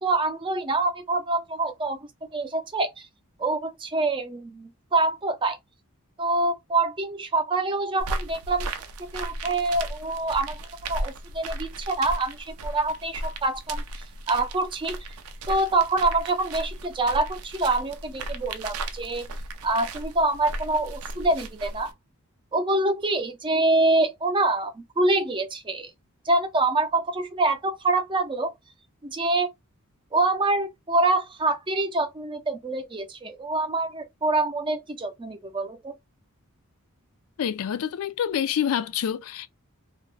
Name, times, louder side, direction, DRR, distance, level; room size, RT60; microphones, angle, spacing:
voice 1, 0.0-3.1 3.4-5.6 6.2-8.7 9.1-10.6 10.9-13.8 14.3-15.0 15.5-19.2 19.6-21.9 22.5-25.9 26.3-28.5 29.0-29.5 30.1-35.9, right 2 dB, 20° right, 0.5 m, -25 dB
Footsteps on gravel, 8.0-21.9, right 2 dB, 75° right, 0.5 m, -35 dB
voice 2, 37.4-39.5, left 9 dB, 75° left, 0.3 m, -27 dB
2.5 x 2.0 x 3.1 m
head